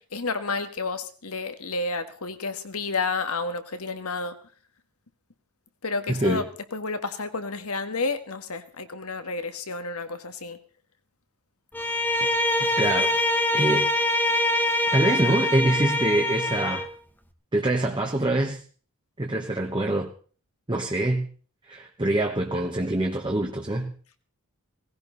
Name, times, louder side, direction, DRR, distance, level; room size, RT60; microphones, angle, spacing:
voice 1, 0.1-4.3 5.8-6.4 6.7-10.6, left 3 dB, 75° left, 9 dB, 1.7 m, -30 dB
voice 2, 6.1-6.4 12.7-13.1 13.5-13.9 14.9-16.9 17.5-18.6 19.2-20.1 20.7-21.3 21.7-23.9, right 1 dB, 20° right, 2 dB, 1.2 m, -25 dB
Bowed string instrument, 11.7-16.9, left 1 dB, 10° left, 1.3 m, -24 dB
18.5 x 16.5 x 4.0 m, 0.42 s
head